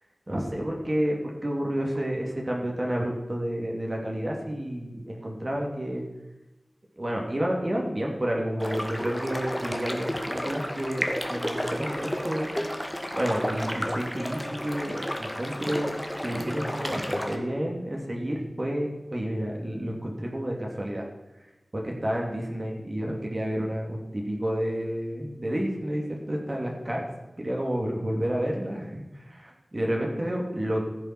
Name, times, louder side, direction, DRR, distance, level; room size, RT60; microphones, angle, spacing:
voice 1, 0.3-6.0 7.0-12.5 13.1-15.9 16.2-21.0 21.7-27.0 27.4-30.8, equal, 40° right, -1 dB, 2.8 m, -30 dB
sound 1, 8.6-17.4, equal, 5° left, 1.7 m, -32 dB
15.0 x 7.3 x 6.1 m, 1.0 s
wide cardioid pair, 65°, 0 cm